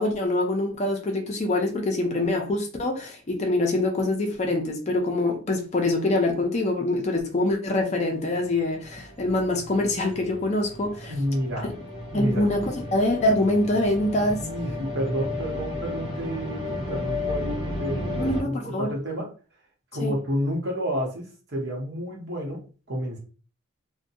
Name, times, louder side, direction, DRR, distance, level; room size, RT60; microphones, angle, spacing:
voice 1, 0.0-11.1 11.6-11.7 12.1-14.5 18.2-18.9 20.0-20.1, left 2 dB, 30° left, 2 dB, 0.4 m, -25 dB
sound 1, 8.2-18.4, left 2 dB, 20° right, 0.7 m, -34 dB
voice 2, 11.1-11.7 12.1-12.4 14.3-19.3 19.9-22.6 22.9-23.2, equal, 55° right, -2 dB, 0.9 m, -30 dB
2.6 x 2.2 x 2.6 m, 0.36 s
head